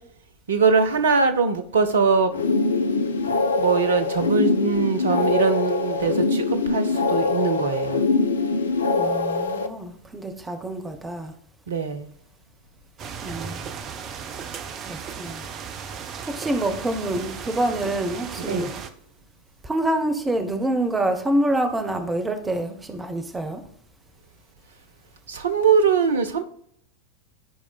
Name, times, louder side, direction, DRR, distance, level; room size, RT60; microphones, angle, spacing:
voice 1, 0.5-2.3 3.6-8.0 11.7-12.1 18.5-18.7 25.3-26.4, right 5 dB, 65° right, 0.9 m, -22 dB
sound 1, 2.3-9.7, left 3 dB, 70° left, 0.7 m, -23 dB
voice 2, 8.9-11.3 13.2-13.6 14.8-15.4 16.3-18.7 19.6-23.6, right 1 dB, 10° right, 1.0 m, -26 dB
sound 2, 13.0-18.9, right 6 dB, 35° right, 0.8 m, -36 dB
14.0 x 4.9 x 2.3 m
figure-of-eight pair, 90°, 0 cm